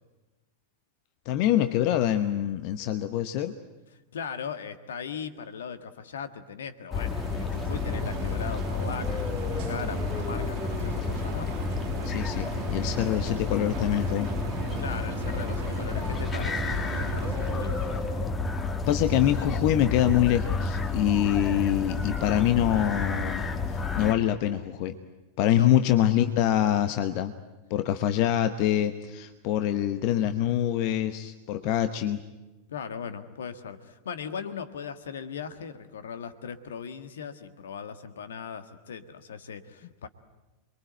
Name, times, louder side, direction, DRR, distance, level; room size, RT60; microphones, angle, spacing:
voice 1, 1.3-3.5 12.0-14.3 18.9-24.9 25.4-27.3 27.7-32.2, left 11 dB, 45° left, 10 dB, 1.0 m, -25 dB
voice 2, 4.1-11.5 14.8-17.9 25.5-25.7 32.7-40.1, left 7 dB, 65° left, 11 dB, 1.6 m, -39 dB
sound 1, 6.9-24.1, left 4 dB, 20° left, 1.7 m, -30 dB
sound 2, 7.0-18.3, right 13 dB, 50° right, 0.9 m, -39 dB
28.0 x 22.5 x 9.1 m, 1.1 s
figure-of-eight pair, 90°, 0 cm